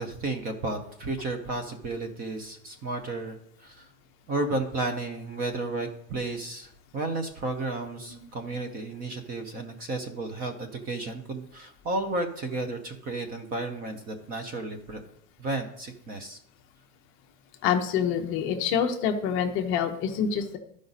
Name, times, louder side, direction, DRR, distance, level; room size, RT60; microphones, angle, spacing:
voice 1, 0.0-3.9 4.3-15.0 15.4-16.4, right 2 dB, 20° right, 6 dB, 0.6 m, -33 dB
voice 2, 17.6-20.6, left 7 dB, 30° left, 5 dB, 0.6 m, -26 dB
12.0 x 5.0 x 4.0 m, 0.72 s
supercardioid pair, 160°, 43 cm